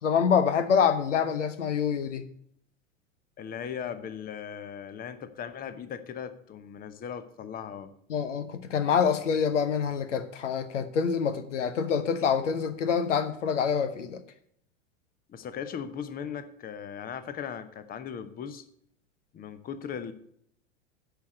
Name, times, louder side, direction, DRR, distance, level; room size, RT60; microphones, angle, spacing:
voice 1, 0.0-2.2 8.1-14.2, left 7 dB, 75° left, 11 dB, 1.1 m, -26 dB
voice 2, 3.4-7.9 15.3-18.6 19.3-20.1, left 8 dB, 25° left, 12 dB, 0.9 m, -38 dB
10.0 x 5.0 x 7.7 m, 0.69 s
figure-of-eight pair, 90°, 38 cm